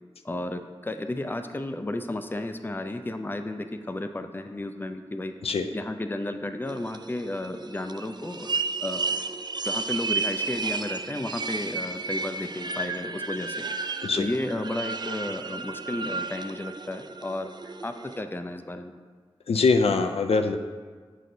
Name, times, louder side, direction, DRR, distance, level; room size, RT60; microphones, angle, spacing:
voice 1, 0.2-5.3 5.7-9.3 9.6-13.6 14.2-18.9, left 1 dB, 20° left, 8 dB, 0.4 m, -33 dB
sound 1, 6.7-18.2, right 4 dB, 45° right, 0.3 m, -33 dB
voice 2, 19.5-20.6, left 4 dB, 80° left, 6 dB, 0.4 m, -23 dB
6.3 x 5.9 x 2.7 m, 1.5 s
cardioid pair, 40°, 10 cm